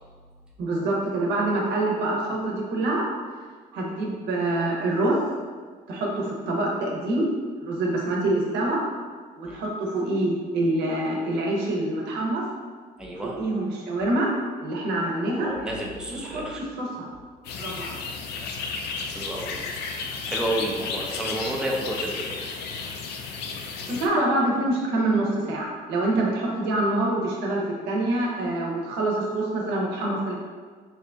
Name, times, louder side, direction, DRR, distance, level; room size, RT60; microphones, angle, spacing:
voice 1, 0.6-3.1 3.7-5.2 5.9-7.3 7.6-8.8 9.4-12.4 13.2-14.3 14.6-15.5 16.1-17.1 17.6-17.9 23.8-30.4, right 2 dB, 90° right, -2 dB, 0.8 m, -26 dB
voice 2, 13.0-13.4 15.4-16.6 19.1-19.8 20.3-22.5, right 1 dB, 5° right, -2 dB, 0.5 m, -31 dB
sound 1, 17.4-24.1, left 5 dB, 75° left, 0.4 m, -33 dB
2.8 x 2.5 x 3.4 m, 1.5 s
cardioid pair, 110°, 17 cm